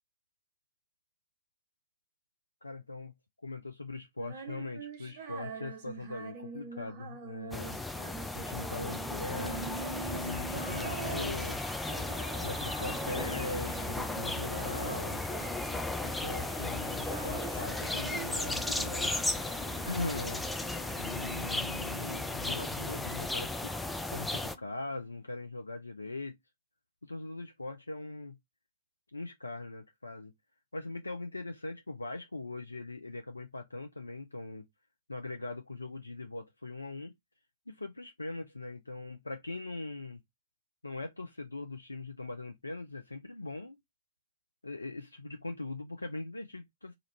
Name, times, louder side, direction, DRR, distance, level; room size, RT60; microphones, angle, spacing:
voice 1, 2.6-3.1 3.4-7.8 8.3-9.8 10.1-11.6 12.4-15.2 16.0-19.2 19.9-20.4 21.0-23.7 24.0-26.4 27.0-28.4 29.1-30.3 30.7-34.7 35.1-37.1 37.7-40.2 40.8-43.8 44.6-46.9, left 2 dB, 80° left, 0.5 m, -41 dB
Female singing, 4.2-14.5 14.8-16.5 16.7-19.4, right 6 dB, 40° right, 1.1 m, -45 dB
sound 1, 7.5-24.6, left 2 dB, 5° left, 0.3 m, -35 dB
sound 2, 9.4-25.1, right 1 dB, 90° right, 1.0 m, -47 dB
2.9 x 2.5 x 3.1 m
figure-of-eight pair, 105°, 0 cm